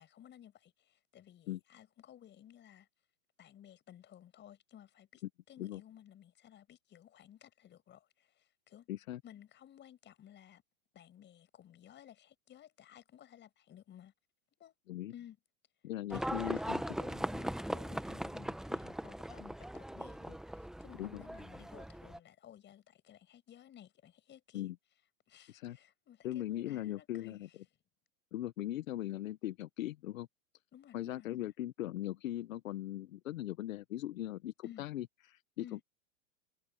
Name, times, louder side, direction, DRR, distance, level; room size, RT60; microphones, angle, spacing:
voice 1, 0.0-2.9 3.4-5.2 5.5-8.9 9.2-10.6 10.9-14.1 14.6-14.8 15.1-15.4 16.1-24.7 25.3-27.5 30.7-31.5 34.6-34.9 35.6-35.8, left 10 dB, 25° left, 6.7 m, -56 dB
voice 2, 8.9-9.2 14.9-15.1 15.8-16.8 21.0-21.2 24.5-24.8 25.5-25.8 26.2-27.5 28.3-30.3 30.9-35.8, left 14 dB, 75° left, 1.1 m, -39 dB
Livestock farm animals working animals, 16.1-22.2, right 1 dB, ahead, 1.1 m, -40 dB
hypercardioid pair, 130°, 40 cm